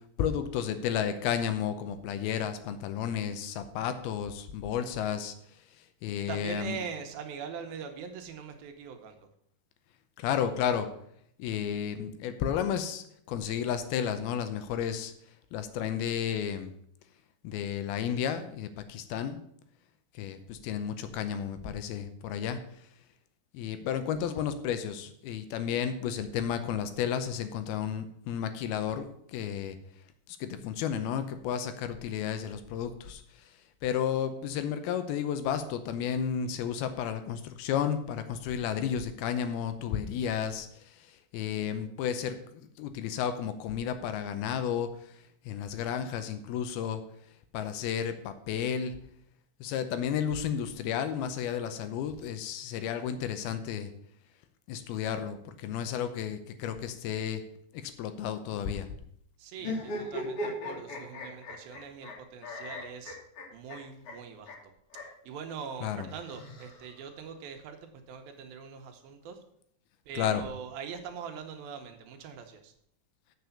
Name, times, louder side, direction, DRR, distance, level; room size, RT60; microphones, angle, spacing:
voice 1, 0.2-5.3 6.0-6.8 10.2-10.9 11.4-15.1 15.5-16.7 17.4-19.4 20.2-22.6 23.5-29.8 30.4-33.2 33.8-40.7 41.3-44.9 45.5-47.0 47.5-49.0 49.6-53.9 54.7-57.4 58.0-58.9 65.8-66.1 70.1-70.4, left 8 dB, 75° left, 9 dB, 2.6 m, -32 dB
voice 2, 6.2-9.3 59.4-63.2 63.5-64.5 65.2-69.4 70.1-72.7, right 6 dB, 75° right, 5 dB, 2.5 m, -42 dB
sound 1, 59.6-62.1 62.4-63.8 64.0-64.1 64.5-64.6 64.9-65.0 66.1-67.1, left 1 dB, 50° left, 3.2 m, -38 dB
7.8 x 6.8 x 7.1 m, 0.69 s
omnidirectional pair, 4.7 m